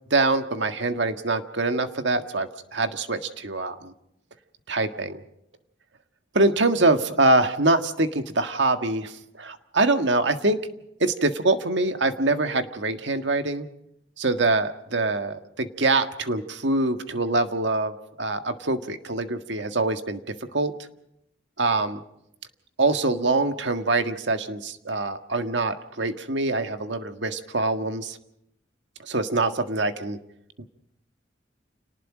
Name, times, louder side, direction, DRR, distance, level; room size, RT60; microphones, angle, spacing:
voice 1, 0.1-3.9 4.7-5.2 6.3-10.6 11.0-13.7 14.2-20.2 20.5-20.7 21.6-22.0 22.8-28.2 29.0-30.2 30.6-30.7, right 2 dB, 75° right, 8 dB, 1.7 m, -24 dB
29.0 x 19.0 x 5.0 m, 0.79 s
head